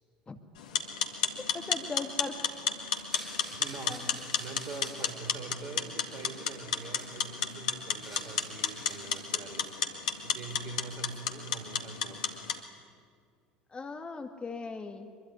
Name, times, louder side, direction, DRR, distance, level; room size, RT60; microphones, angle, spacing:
sound 1, 0.6-12.6, left 7 dB, 70° left, 2.0 m, -33 dB
voice 1, 1.4-2.4 3.9-4.0 13.7-15.1, left 4 dB, 25° left, 7 dB, 2.1 m, -39 dB
sound 2, 2.9-5.5 5.8-7.5 7.8-9.4, left 1 dB, ahead, 6.4 m, -50 dB
voice 2, 3.5-4.1 4.4-9.8 10.2-12.4, right 4 dB, 45° right, 7 dB, 4.5 m, -44 dB
24.5 x 22.5 x 9.6 m, 2.1 s
figure-of-eight pair, 65°, 4 cm